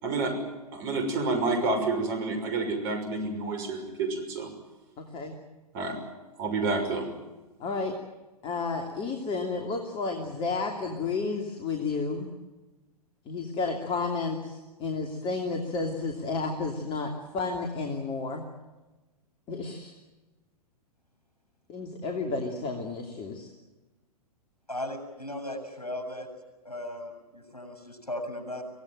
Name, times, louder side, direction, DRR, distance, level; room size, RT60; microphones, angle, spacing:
voice 1, 0.0-0.3 0.7-4.5 5.7-5.9 6.4-7.1, right 3 dB, 40° right, 6 dB, 6.1 m, -29 dB
voice 2, 7.6-7.9 8.4-12.3 13.3-18.4 19.5-19.9 21.7-23.5, left 4 dB, 25° left, 3 dB, 2.9 m, -31 dB
voice 3, 24.7-26.3 26.6-28.6, left 1 dB, 80° left, 6 dB, 7.1 m, -37 dB
25.0 x 17.5 x 9.1 m, 1.1 s
figure-of-eight pair, 110°, 20 cm